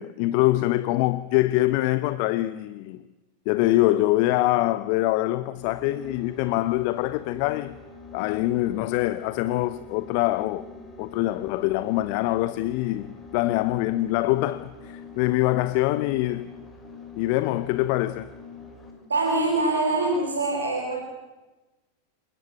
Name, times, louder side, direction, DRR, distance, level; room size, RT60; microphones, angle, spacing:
voice 1, 0.0-3.0 3.5-7.8 8.1-10.6 11.0-16.5 17.2-18.3, left 17 dB, 45° left, 0.8 m, -24 dB
sound 1, 5.6-19.1, left 5 dB, 15° left, 5.3 m, -44 dB
voice 2, 19.1-21.0, right 2 dB, 75° right, 4.5 m, -24 dB
28.5 x 17.0 x 9.5 m
figure-of-eight pair, 90°, 0 cm